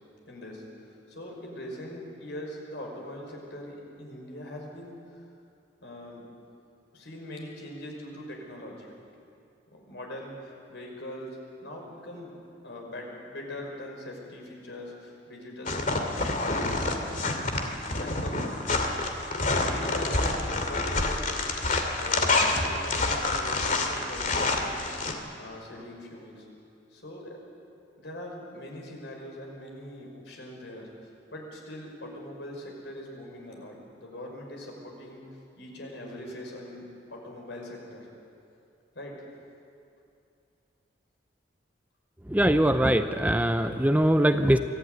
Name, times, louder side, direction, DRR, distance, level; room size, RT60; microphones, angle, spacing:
voice 1, 0.3-5.2 5.8-6.2 6.9-8.9 9.7-11.3 11.6-12.3 12.6-17.2 18.0-18.6 19.6-21.6 22.0-24.9 25.4-26.4 26.9-27.4 28.0-35.2 35.6-38.1 38.9-39.1, left 1 dB, 70° left, 0 dB, 5.6 m, -42 dB
sound 1, 15.7-25.1, left 2 dB, 45° left, 2.4 m, -27 dB
voice 2, 42.3-44.6, right 1 dB, 10° right, 8 dB, 0.6 m, -22 dB
23.5 x 15.0 x 9.4 m, 2.5 s
head